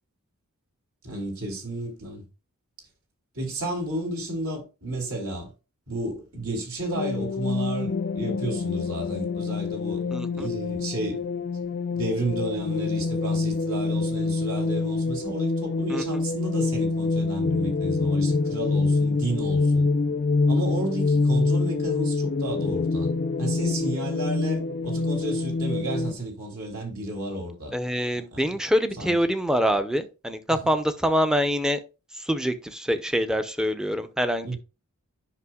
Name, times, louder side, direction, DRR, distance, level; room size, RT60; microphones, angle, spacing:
voice 1, 1.0-2.2 3.3-5.5 5.9-11.2 12.0-19.9 20.5-23.1 23.4-27.7 28.3-28.4 29.0-29.2 34.4-34.6, right 1 dB, 70° right, 3.0 m, -32 dB
sound 1, 6.9-26.1, left 3 dB, 45° left, 0.4 m, -26 dB
voice 2, 27.7-31.8 32.2-34.6, equal, 5° right, 0.6 m, -25 dB
9.6 x 5.6 x 2.3 m
head